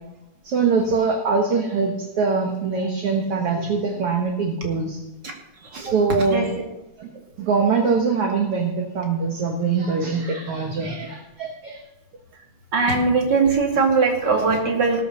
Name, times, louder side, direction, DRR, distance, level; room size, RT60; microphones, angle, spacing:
voice 1, 0.4-5.0 5.7-6.5 7.0-7.1 7.4-11.8, right 4 dB, 55° right, 2 dB, 2.0 m, -23 dB
voice 2, 12.7-15.0, right 4 dB, 35° right, 1 dB, 2.6 m, -20 dB
18.0 x 6.7 x 6.8 m, 0.96 s
omnidirectional pair, 3.6 m